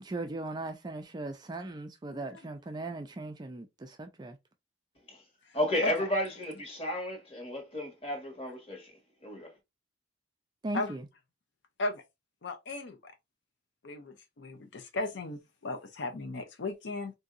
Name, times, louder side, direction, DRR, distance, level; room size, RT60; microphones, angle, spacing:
voice 1, 0.0-4.4 10.6-11.1, right 2 dB, 20° right, 0.3 m, -38 dB
voice 2, 2.1-2.4 5.8-6.1 10.7-10.9 11.8-12.0 12.4-13.1 13.8-17.1, left 2 dB, 65° left, 0.6 m, -36 dB
voice 3, 5.5-9.5, left 1 dB, 30° left, 1.4 m, -33 dB
3.7 x 2.7 x 2.4 m
head